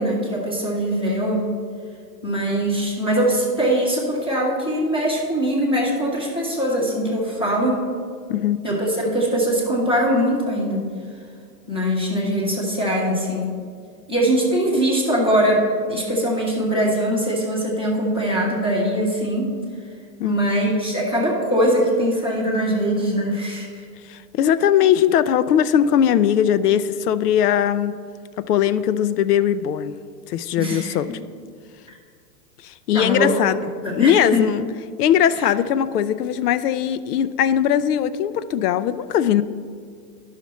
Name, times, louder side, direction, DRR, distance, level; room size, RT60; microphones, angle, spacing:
voice 1, 0.0-1.4 2.2-7.8 8.6-10.9 11.7-13.6 14.1-19.5 20.2-23.8 30.6-30.9 32.9-33.3 33.8-34.5, equal, 15° left, -10 dB, 0.3 m, -22 dB
voice 2, 24.1-27.9 28.4-29.9 30.3-31.2 32.6-33.6 33.9-34.6 35.0-39.4, left 9 dB, 70° left, 14 dB, 0.5 m, -20 dB
12.0 x 5.7 x 3.1 m, 2.1 s
hypercardioid pair, 160°, 49 cm